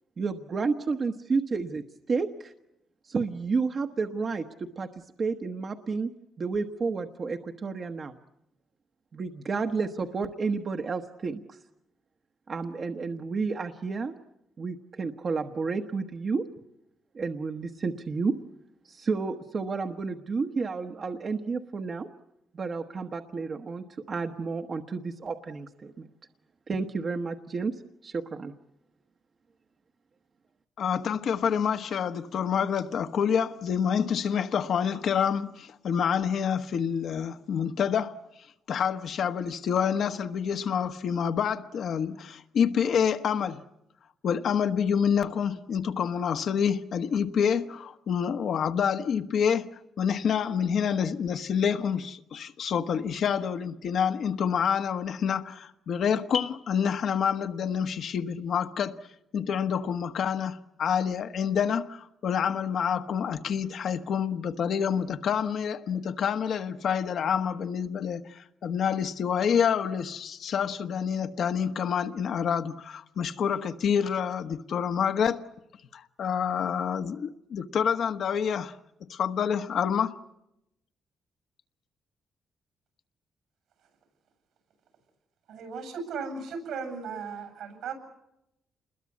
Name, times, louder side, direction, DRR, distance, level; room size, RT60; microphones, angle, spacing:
voice 1, 0.2-2.5 3.1-4.9 5.2-6.1 6.4-8.2 9.1-11.6 12.5-14.1 14.6-16.4 17.1-18.4 18.8-22.1 22.5-26.1 26.7-28.5, right 4 dB, 35° right, 1.1 m, -31 dB
voice 2, 30.8-38.2 38.7-43.6 44.2-49.7 50.0-59.0 59.3-75.4 75.9-78.7 79.1-80.2, left 7 dB, 60° left, 1.2 m, -27 dB
voice 3, 85.5-87.9, right 5 dB, 85° right, 8.0 m, -36 dB
28.5 x 21.5 x 8.4 m
cardioid pair, 150°, 0 cm